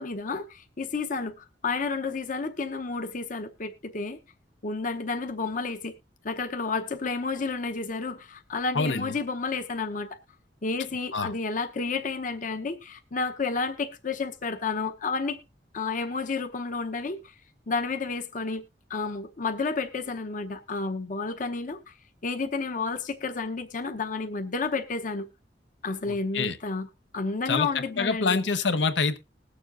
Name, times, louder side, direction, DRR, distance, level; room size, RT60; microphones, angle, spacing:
voice 1, 0.0-4.2 4.6-5.9 6.2-10.1 10.6-15.4 15.7-17.3 17.7-18.6 18.9-21.9 22.2-25.3 25.8-26.9 27.1-28.4, left 4 dB, 45° left, 0.8 m, -31 dB
voice 2, 8.7-9.1 11.1-11.3 26.1-26.6 27.5-27.7 28.0-29.2, left 4 dB, 85° left, 0.9 m, -26 dB
20.5 x 7.0 x 2.5 m
head